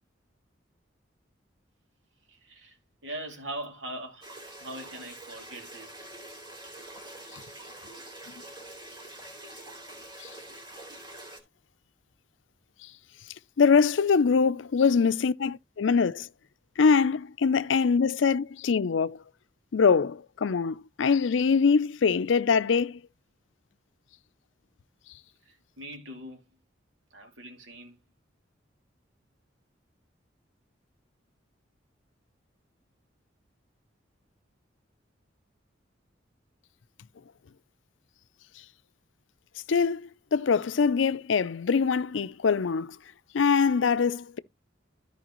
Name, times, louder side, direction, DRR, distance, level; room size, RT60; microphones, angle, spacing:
voice 1, 2.3-2.8 3.0-4.3 4.6-5.9 14.4-14.6 25.5-26.4 27.1-27.9, right 1 dB, 85° right, 2.6 m, -41 dB
sound 1, 4.2-11.4, right 1 dB, 25° right, 2.7 m, -45 dB
voice 2, 13.6-16.3 16.8-19.2 19.7-23.0 39.7-43.0 43.3-44.4, left 5 dB, 85° left, 0.5 m, -23 dB
13.5 x 5.0 x 3.0 m
head